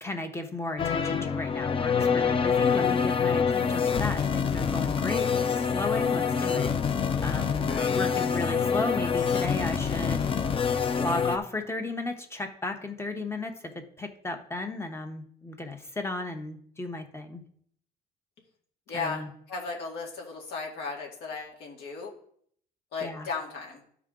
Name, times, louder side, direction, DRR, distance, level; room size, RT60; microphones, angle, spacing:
voice 1, 0.0-5.3 5.7-6.7 7.2-10.3 11.0-17.4 18.9-19.3 23.0-23.3, left 2 dB, 15° left, 6 dB, 1.1 m, -34 dB
sound 1, 0.8-11.4, left 6 dB, 30° left, 0.6 m, -26 dB
voice 2, 2.7-3.1 7.6-8.0 18.9-22.1 22.9-23.8, left 4 dB, 75° left, -1 dB, 2.3 m, -36 dB
12.0 x 4.7 x 3.8 m, 0.63 s
cardioid pair, 110°, 17 cm